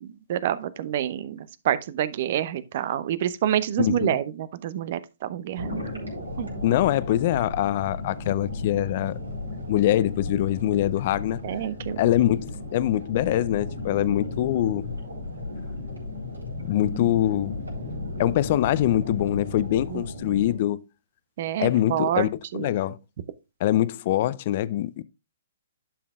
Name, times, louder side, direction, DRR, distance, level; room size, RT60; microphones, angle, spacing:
voice 1, 0.0-5.8 6.4-6.6 11.4-12.0 19.9-20.0 21.4-22.7, right 11 dB, 50° right, 0.6 m, -28 dB
voice 2, 3.8-4.2 6.6-9.2 9.7-11.4 12.0-15.0 16.6-17.6 18.2-20.8 21.6-23.0 23.6-25.0, left 13 dB, 45° left, 0.5 m, -24 dB
sound 1, 5.6-20.5, left 2 dB, 90° right, 3.8 m, -35 dB
11.0 x 5.8 x 2.4 m
figure-of-eight pair, 125°, 0 cm